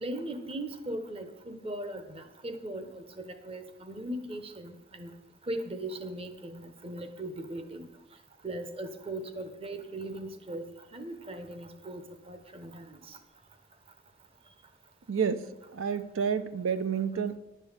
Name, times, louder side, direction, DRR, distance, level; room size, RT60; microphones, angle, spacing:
voice 1, 0.0-5.1 5.5-7.9 8.4-10.7 10.9-13.2, right 1 dB, 30° right, 8 dB, 0.8 m, -39 dB
voice 2, 15.1-17.4, right 6 dB, 85° right, 12 dB, 0.5 m, -30 dB
10.5 x 5.5 x 7.9 m, 1.0 s
head